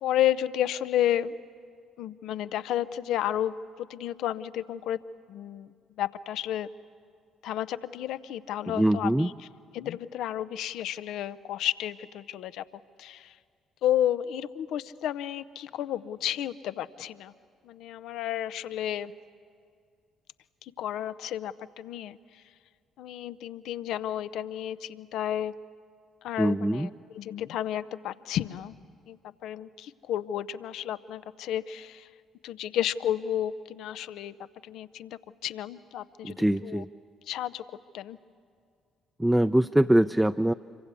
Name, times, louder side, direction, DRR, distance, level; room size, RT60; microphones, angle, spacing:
voice 1, 0.0-1.4 2.0-5.0 5.3-6.7 7.4-9.5 9.7-12.6 13.0-13.3 13.8-17.3 17.6-19.1 20.6-22.4 23.0-25.5 26.2-28.8 29.1-32.1 32.4-34.4 34.6-36.8 37.3-37.6 37.9-38.2, left 11 dB, 65° left, 15 dB, 0.7 m, -32 dB
voice 2, 8.8-9.3 26.4-26.9 36.2-36.9 39.2-40.5, right 1 dB, 5° right, 8 dB, 0.6 m, -23 dB
26.5 x 24.0 x 8.3 m, 2.2 s
hypercardioid pair, 45°, 0 cm